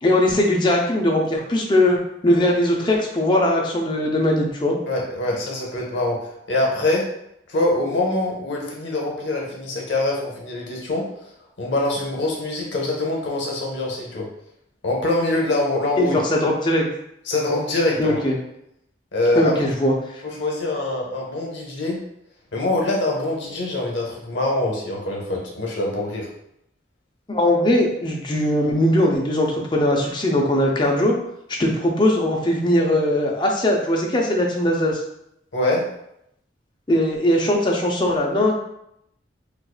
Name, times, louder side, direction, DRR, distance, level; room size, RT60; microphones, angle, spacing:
voice 1, 0.0-4.8 16.0-16.9 18.0-18.4 19.3-20.2 27.3-31.2 31.6-35.0 36.9-38.5, left 1 dB, 25° left, 0 dB, 0.5 m, -20 dB
voice 2, 4.9-6.2 6.5-7.1 7.5-11.0 11.6-14.3 14.8-16.2 17.3-18.2 19.1-19.5 20.2-22.0 22.5-26.3 35.5-35.8, left 2 dB, 75° left, -1 dB, 0.8 m, -24 dB
4.5 x 2.3 x 2.3 m, 0.78 s
head